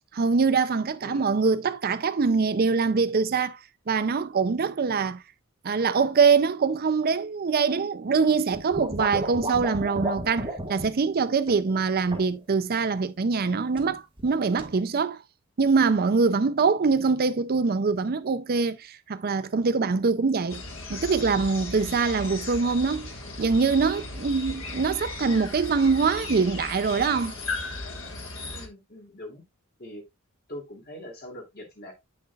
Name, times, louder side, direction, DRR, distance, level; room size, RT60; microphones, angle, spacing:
voice 1, 0.1-3.6 3.9-5.2 5.6-15.2 15.6-20.6 20.9-23.1 23.4-27.3, right 4 dB, 45° right, 0.5 m, -24 dB
sound 1, 8.5-10.9 11.5-11.7 12.1-12.4 13.8-14.3 14.6-14.8, right 1 dB, 25° right, 1.6 m, -33 dB
sound 2, 20.5-28.7, left 3 dB, 65° left, 1.6 m, -36 dB
voice 2, 28.5-29.4 29.8-30.0 30.5-31.9, left 1 dB, 45° left, 2.8 m, -42 dB
8.6 x 6.5 x 2.3 m
head